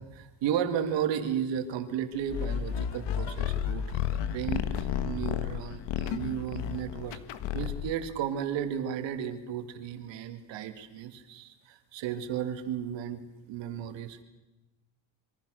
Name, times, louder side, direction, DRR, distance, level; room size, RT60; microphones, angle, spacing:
voice 1, 0.1-7.2 7.5-14.2, right 9 dB, 80° right, 8 dB, 2.4 m, -34 dB
sound 1, 2.3-8.0, left 9 dB, 70° left, 1.6 m, -32 dB
27.0 x 23.5 x 6.6 m, 1.0 s
cardioid pair, 150°, 44 cm